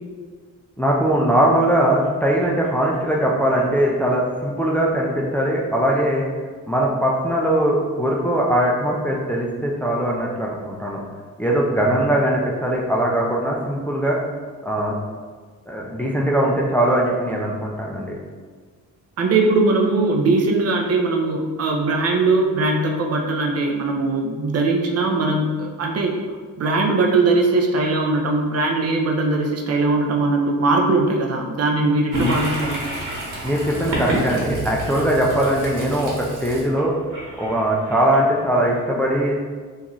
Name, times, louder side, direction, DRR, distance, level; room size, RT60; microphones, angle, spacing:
voice 1, 0.8-6.3 6.7-11.0 11.4-14.2 14.6-14.9 15.7-18.2 33.4-36.9 37.4-39.3, right 1 dB, 5° left, -3 dB, 0.4 m, -20 dB
voice 2, 19.2-26.2 26.6-32.9, right 3 dB, 45° right, 1 dB, 0.5 m, -20 dB
Toilet flush, 32.1-38.7, right 1 dB, 60° right, 1.2 m, -29 dB
3.7 x 2.6 x 2.9 m, 1.5 s
cardioid pair, 95°, 35 cm